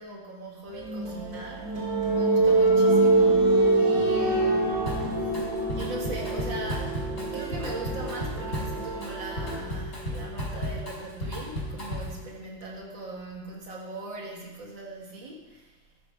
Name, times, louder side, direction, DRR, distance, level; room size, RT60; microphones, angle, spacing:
voice 1, 0.0-1.7 2.1-3.5 3.8-4.6 5.0-5.3 5.8-15.7, right 2 dB, 60° right, -1 dB, 2.6 m, -40 dB
sound 1, 0.7-9.5, right 3 dB, 75° right, 3.3 m, -37 dB
sound 2, 0.9-12.4, right 2 dB, 20° right, 0.6 m, -26 dB
Drum kit, 4.9-5.4 5.7-12.2, equal, 40° left, 4.3 m, -34 dB
12.0 x 10.5 x 4.8 m, 1.2 s
omnidirectional pair, 2.3 m